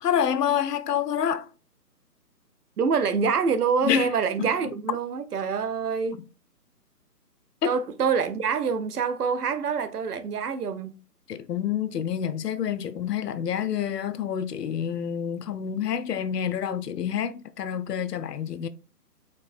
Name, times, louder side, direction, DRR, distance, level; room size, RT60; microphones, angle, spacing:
voice 1, 0.0-1.5 3.8-4.1 4.4-4.5 6.1-6.2 7.6-7.7 11.3-18.7, left 9 dB, 75° left, 0.6 m, -27 dB
voice 2, 2.8-6.2 7.6-10.9, right 6 dB, 70° right, 0.7 m, -26 dB
4.5 x 2.6 x 2.4 m
figure-of-eight pair, 150°, 48 cm